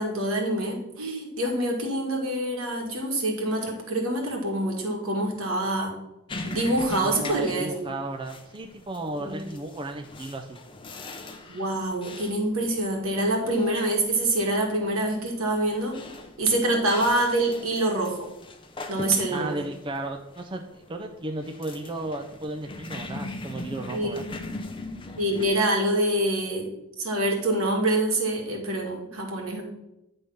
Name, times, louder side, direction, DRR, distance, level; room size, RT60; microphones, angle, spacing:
voice 1, 0.0-6.0 6.4-7.9 9.2-9.4 11.5-16.0 16.4-18.3 18.9-19.6 23.9-24.2 25.2-26.7 27.0-29.6, right 1 dB, 85° right, 1 dB, 1.7 m, -26 dB
sound 1, 6.3-25.5, left 2 dB, 25° left, 0.6 m, -41 dB
voice 2, 7.0-10.6 19.3-24.2, right 2 dB, 25° right, 4 dB, 0.4 m, -34 dB
9.0 x 3.6 x 5.5 m, 0.93 s
head